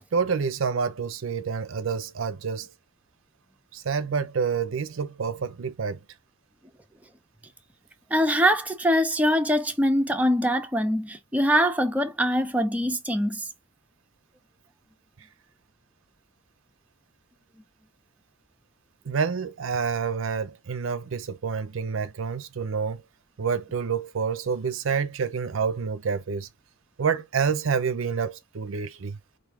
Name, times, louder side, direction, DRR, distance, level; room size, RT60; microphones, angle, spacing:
voice 1, 0.1-2.7 3.7-6.0 19.0-23.0 23.4-26.5 27.0-29.2, right 6 dB, 65° right, 0.5 m, -28 dB
voice 2, 8.1-13.4, equal, 5° right, 0.5 m, -23 dB
4.6 x 2.6 x 3.5 m
head